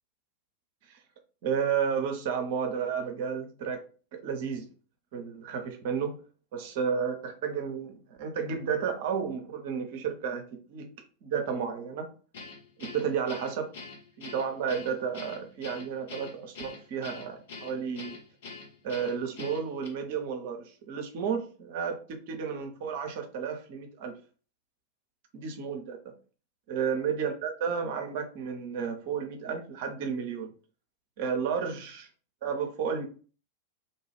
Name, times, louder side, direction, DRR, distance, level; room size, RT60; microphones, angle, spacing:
voice 1, 1.4-3.8 4.1-4.7 5.1-6.2 6.5-10.9 11.2-12.1 12.8-13.7 14.2-18.1 18.8-24.1 25.3-26.0 26.7-30.5 31.2-32.1 32.4-33.1, right 6 dB, 50° right, 4 dB, 0.6 m, -32 dB
Guitar, 12.3-19.9, left 4 dB, 60° left, 0.8 m, -44 dB
2.6 x 2.3 x 3.2 m, 0.39 s
figure-of-eight pair, 90°, 0 cm